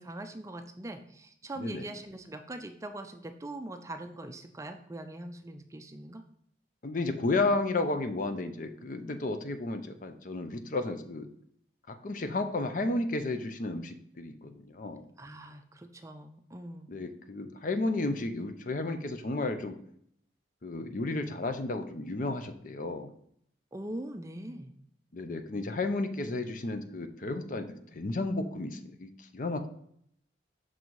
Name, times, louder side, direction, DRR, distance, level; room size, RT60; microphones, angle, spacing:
voice 1, 0.0-6.2 15.2-16.9 23.7-24.7, right 1 dB, 15° right, 7 dB, 0.4 m, -42 dB
voice 2, 6.8-11.3 11.9-15.0 16.9-19.8 20.6-23.1 25.1-29.7, left 2 dB, 45° left, 8 dB, 0.5 m, -33 dB
6.1 x 4.0 x 4.6 m, 0.68 s
head